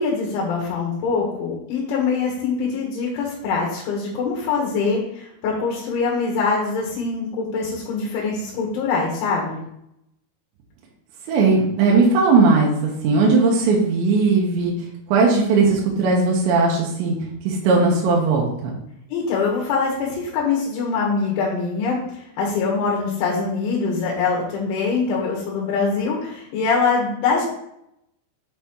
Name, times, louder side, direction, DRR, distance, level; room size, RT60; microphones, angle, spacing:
voice 1, 0.0-9.6 19.1-27.4, left 4 dB, 80° left, -2 dB, 3.7 m, -23 dB
voice 2, 11.3-12.7 13.0-14.7 15.1-17.1 17.4-18.7, right 4 dB, 75° right, -2 dB, 3.2 m, -18 dB
8.1 x 4.1 x 4.4 m, 0.78 s
omnidirectional pair, 5.5 m